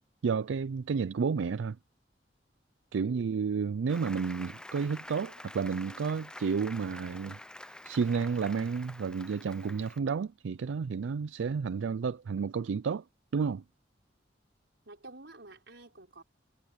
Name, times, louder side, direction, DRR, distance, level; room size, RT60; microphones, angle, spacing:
voice 1, 0.2-1.8 2.9-7.4 7.8-13.0 13.3-13.6, right 5 dB, 85° right, 0.4 m, -31 dB
voice 2, 3.0-3.5 14.8-16.2, right 2 dB, 70° right, 5.1 m, -51 dB
Applause, 3.9-10.0, left 1 dB, 5° left, 0.5 m, -48 dB
head